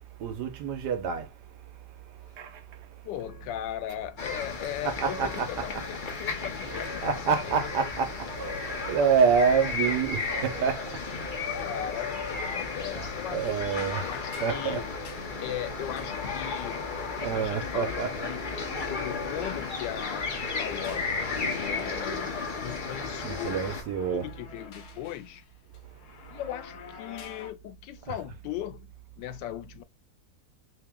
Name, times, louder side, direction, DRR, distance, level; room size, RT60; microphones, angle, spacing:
voice 1, 0.2-3.0 4.8-5.8 6.7-11.5 13.3-14.1 14.4-14.8 17.2-18.3 23.2-24.2 28.1-28.2, right 6 dB, 70° right, 1.3 m, -28 dB
voice 2, 3.0-7.1 7.4-7.9 11.6-14.9 15.4-16.9 17.3-18.4 18.9-21.2 21.5-23.6 24.1-25.4 26.3-29.8, left 12 dB, 85° left, 1.3 m, -38 dB
sound 1, 3.2-10.7, right 1 dB, 15° right, 1.8 m, -46 dB
sound 2, 4.2-23.8, left 4 dB, 50° left, 0.6 m, -34 dB
sound 3, 11.3-20.2 20.8-21.7 22.2-25.4 25.7-27.5, left 7 dB, 65° left, 1.2 m, -44 dB
3.3 x 2.9 x 3.5 m
omnidirectional pair, 1.9 m